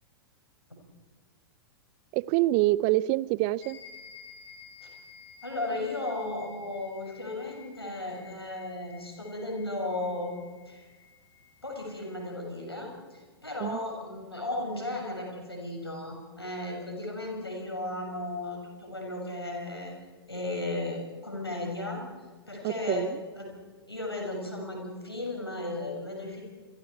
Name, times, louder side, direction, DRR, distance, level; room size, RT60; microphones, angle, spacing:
voice 1, 2.1-3.8 13.6-13.8 22.6-23.1, right 18 dB, 35° right, 0.6 m, -26 dB
sound 1, 3.6-12.3, left 6 dB, 40° left, 4.5 m, -53 dB
voice 2, 5.4-10.3 10.7-10.9 11.6-19.9 20.3-22.0 22.5-23.1 23.3-23.5 23.9-26.4, left 2 dB, 85° left, 6.7 m, -35 dB
28.5 x 23.0 x 4.6 m
figure-of-eight pair, 105°, 13 cm